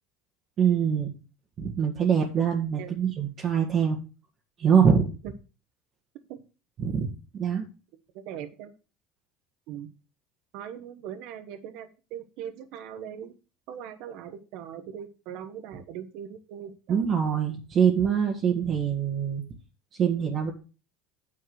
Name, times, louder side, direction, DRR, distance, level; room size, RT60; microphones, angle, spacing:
voice 1, 0.6-1.1 1.6-4.0 4.6-5.1 6.8-7.1 7.3-7.6 16.9-19.4 20.0-20.5, right 7 dB, 45° right, -1 dB, 1.9 m, -24 dB
voice 2, 8.2-8.7 9.7-9.9 10.5-13.3 13.7-17.0, right 9 dB, 70° right, 10 dB, 1.1 m, -40 dB
9.8 x 4.6 x 6.4 m, 0.33 s
supercardioid pair, 100°, 0 cm